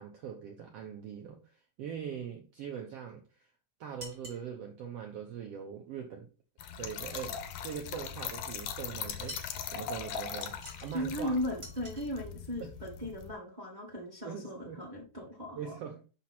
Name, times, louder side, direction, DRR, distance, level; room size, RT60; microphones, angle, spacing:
voice 1, 0.0-3.5 3.8-6.3 6.7-9.4 9.7-10.6 10.8-11.4 12.6-12.7 14.2-14.8 15.5-16.0, right 8 dB, 80° right, 1.4 m, -42 dB
sound 1, 4.0-4.5 9.3-9.6 10.4-11.0 11.6-12.1, equal, 20° right, 2.2 m, -47 dB
Trickle dribble / Fill (with liquid), 6.6-13.3, left 7 dB, 75° left, 2.4 m, -40 dB
voice 2, 10.9-15.7, left 1 dB, 45° right, 0.5 m, -37 dB
5.9 x 5.9 x 4.2 m
omnidirectional pair, 3.8 m